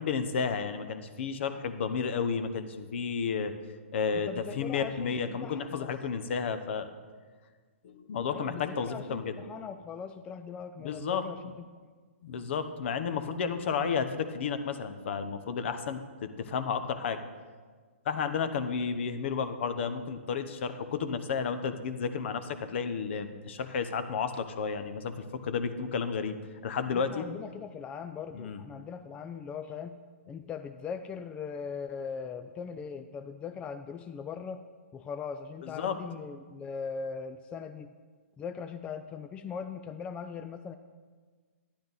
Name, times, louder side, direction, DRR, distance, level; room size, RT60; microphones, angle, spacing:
voice 1, 0.0-3.5 3.9-4.3 4.6-6.9 7.8-9.4 10.8-11.2 12.2-17.2 18.0-26.4 26.6-27.3 28.3-28.6 35.6-36.0, left 6 dB, 55° left, 10 dB, 0.9 m, -32 dB
voice 2, 4.1-5.9 8.3-11.5 26.9-30.0 30.3-34.6 34.9-37.9 38.4-40.7, left 6 dB, 15° left, 8 dB, 0.3 m, -40 dB
12.0 x 10.5 x 4.1 m, 1.5 s
hypercardioid pair, 140°, 7 cm